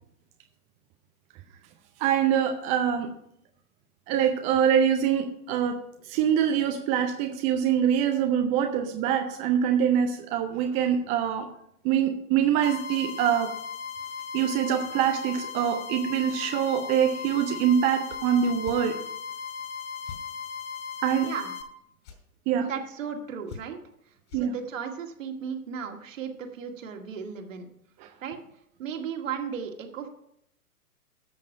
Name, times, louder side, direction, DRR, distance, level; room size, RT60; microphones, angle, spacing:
voice 1, 2.0-3.1 4.1-5.8 6.1-11.5 11.8-13.5 14.3-18.9 21.0-21.3 22.5-22.7 24.3-24.5 28.0-28.1, right 9 dB, 15° right, 5 dB, 0.6 m, -24 dB
sound 1, 12.6-21.6, left 6 dB, 65° left, 2.7 m, -37 dB
sound 2, 18.0-18.2 18.6-18.8 20.0-20.2 22.0-22.2 23.5-23.9 24.3-24.5, left 6 dB, 45° left, 3.8 m, -43 dB
voice 2, 22.6-23.8 24.1-27.7 28.2-28.4 28.8-30.1, right 7 dB, 55° right, 4 dB, 2.1 m, -35 dB
13.0 x 6.6 x 5.0 m, 0.73 s
figure-of-eight pair, 115°, 45 cm